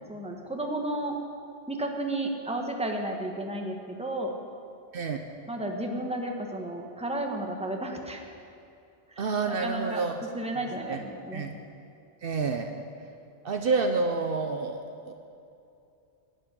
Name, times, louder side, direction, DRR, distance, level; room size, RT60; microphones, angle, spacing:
voice 1, 0.1-1.2 1.7-4.3 5.5-8.2 9.5-10.0 10.3-11.4, right 1 dB, 5° right, 2 dB, 1.2 m, -32 dB
voice 2, 9.2-10.2 10.9-11.0 11.3-11.6 12.2-12.7 13.4-15.1, right 4 dB, 60° right, 5 dB, 0.9 m, -28 dB
11.5 x 7.6 x 10.0 m, 2.6 s
omnidirectional pair, 1.1 m